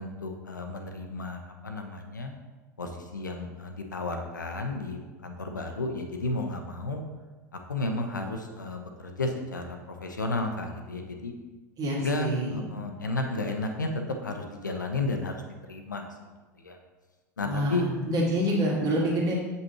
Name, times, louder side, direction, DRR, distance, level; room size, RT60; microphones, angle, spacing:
voice 1, 0.0-2.3 2.8-7.0 7.7-11.3 12.0-13.9 14.2-16.0 16.6-16.8 17.4-17.8, left 2 dB, 80° left, 4 dB, 0.8 m, -33 dB
voice 2, 11.8-12.6 17.4-19.3, equal, 40° right, -3 dB, 2.0 m, -27 dB
8.0 x 5.5 x 3.0 m, 1.2 s
figure-of-eight pair, 80°, 10 cm